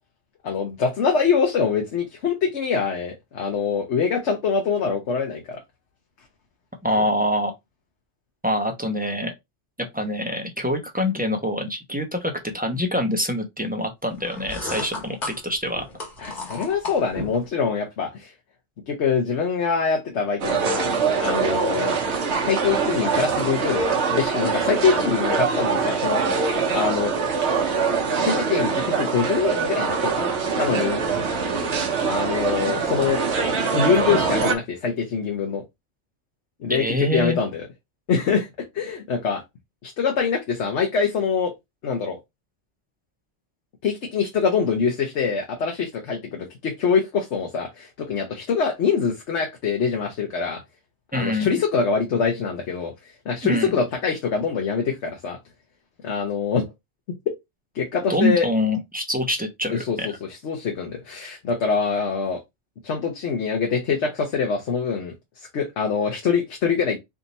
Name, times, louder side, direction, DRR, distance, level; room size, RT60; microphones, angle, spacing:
voice 1, 0.4-5.6 16.2-18.3 18.9-20.9 21.2-22.0 22.4-27.1 28.2-31.0 32.1-33.2 33.7-35.6 36.6-36.8 37.1-37.7 38.1-38.5 38.7-39.4 39.8-41.5 41.8-42.2 43.8-50.6 51.1-52.9 53.2-55.4 56.0-56.7 57.7-58.5 59.7-62.4 62.8-67.0, left 5 dB, 70° left, 1.1 m, -24 dB
voice 2, 6.8-7.5 8.4-9.3 9.9-15.8 36.7-37.4 51.1-51.5 53.4-53.7 58.1-60.1, left 1 dB, 10° right, 0.7 m, -25 dB
sound 1, 14.2-17.5, left 2 dB, 45° left, 1.5 m, -34 dB
sound 2, 20.4-34.5, right 5 dB, 65° right, 1.1 m, -23 dB
3.5 x 2.7 x 4.0 m
omnidirectional pair, 1.3 m